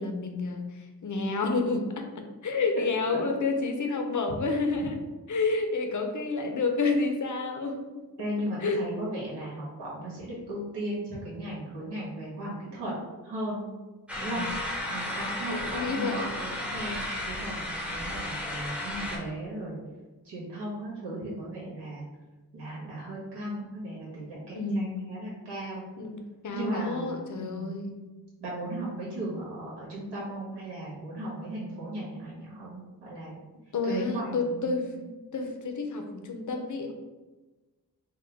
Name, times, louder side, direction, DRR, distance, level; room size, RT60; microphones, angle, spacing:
voice 1, 0.0-5.0 5.3-7.9 8.6-8.8 14.2-14.5 15.5-16.3 24.5-25.0 26.0-28.0 33.7-36.9, left 3 dB, 50° left, 5 dB, 0.5 m, -30 dB
voice 2, 8.2-12.9 13.2-13.6 14.2-14.4 14.9-19.8 20.2-22.0 22.5-25.8 26.5-27.8 28.4-33.4 33.8-34.8, right 1 dB, 80° right, -6 dB, 1.4 m, -36 dB
sound 1, 14.1-19.2, left 1 dB, 5° right, 0.6 m, -34 dB
3.6 x 2.1 x 3.4 m, 1.2 s
wide cardioid pair, 80°, 39 cm